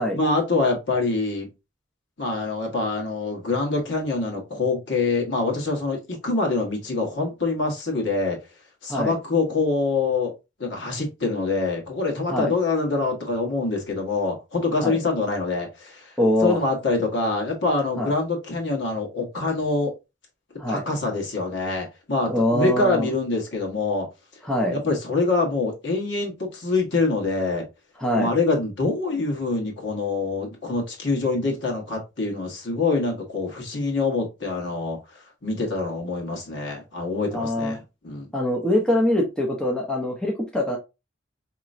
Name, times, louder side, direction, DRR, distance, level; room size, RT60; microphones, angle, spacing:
voice 1, 0.1-1.5 2.2-8.4 8.8-10.3 10.6-16.1 16.4-19.9 20.7-24.1 24.7-27.7 28.2-37.8 38.0-38.3, left 3 dB, 65° left, 1.4 m, -25 dB
voice 2, 16.2-16.7 18.0-18.1 20.6-20.8 22.3-23.1 24.4-24.8 28.0-28.3 37.3-37.8 38.3-40.8, left 1 dB, 5° left, 0.7 m, -23 dB
4.5 x 2.9 x 2.6 m
head